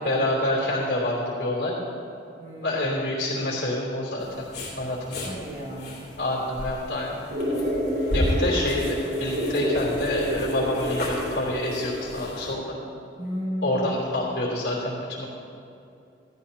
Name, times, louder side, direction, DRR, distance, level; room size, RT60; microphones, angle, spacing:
voice 1, 0.0-1.8 2.6-4.4 4.8-5.3 6.2-7.3 8.1-12.7 13.6-15.3, left 1 dB, 80° left, -4 dB, 3.1 m, -27 dB
voice 2, 2.4-2.8 5.2-6.1 13.2-14.0, equal, 45° right, -6 dB, 2.0 m, -33 dB
sound 1, 4.2-12.5, left 1 dB, 60° left, 2.9 m, -34 dB
sound 2, 7.3-12.3, equal, 70° right, 2.6 m, -29 dB
16.5 x 13.5 x 2.8 m, 2.6 s
head